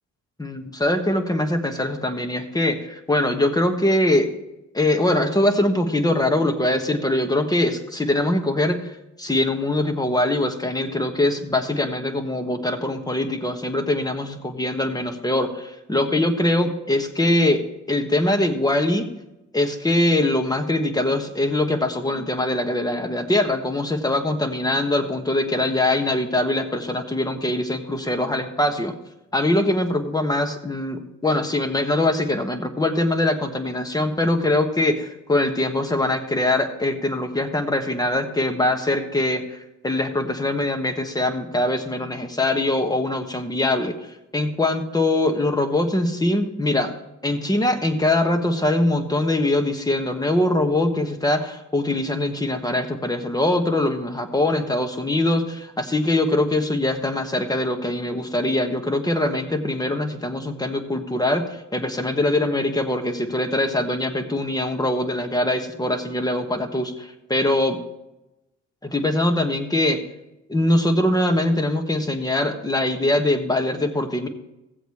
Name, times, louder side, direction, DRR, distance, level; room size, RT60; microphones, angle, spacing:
voice 1, 0.4-4.3 4.7-8.9 9.2-17.6 17.9-19.1 19.5-29.0 29.3-46.9 47.2-67.8 68.8-70.0 70.5-74.3, left 1 dB, 15° left, 6 dB, 1.4 m, -22 dB
15.5 x 7.8 x 3.2 m, 0.92 s
cardioid pair, 90°, 30 cm